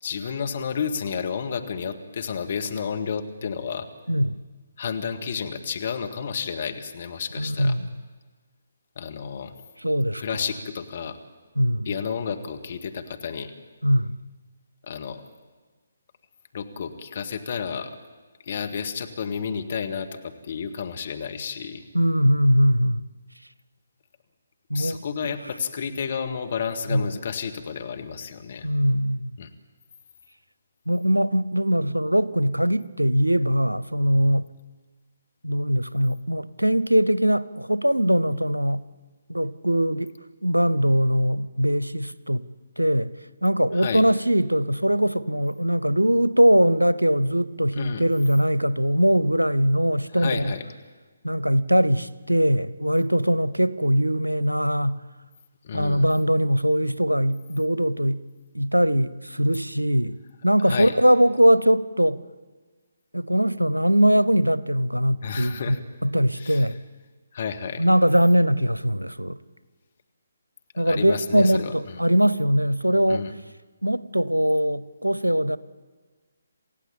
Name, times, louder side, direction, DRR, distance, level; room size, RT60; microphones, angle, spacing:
voice 1, 0.0-3.9 4.8-7.8 9.0-9.5 10.2-11.2 11.9-13.5 14.9-15.2 16.5-18.0 18.5-21.8 24.7-28.7 29.4-29.5 43.8-44.0 47.7-48.0 50.1-50.6 55.6-56.1 60.6-61.0 65.2-65.8 66.4-66.7 67.3-67.8 70.7-72.0 73.1-73.3, left 6 dB, 45° left, 2.0 m, -31 dB
voice 2, 4.1-4.4 7.4-7.9 9.8-10.4 11.6-11.9 13.8-14.2 21.9-23.0 24.7-25.0 26.9-27.0 28.6-29.3 30.9-34.5 35.4-38.8 39.3-40.1 40.4-42.4 42.8-43.1 43.4-50.5 51.2-55.0 55.7-58.2 58.5-60.2 60.4-62.2 63.1-65.8 66.0-66.8 67.8-69.4 70.8-73.3 73.8-75.6, equal, 90° right, 0.8 m, -21 dB
28.0 x 16.0 x 8.7 m
figure-of-eight pair, 140°, 0 cm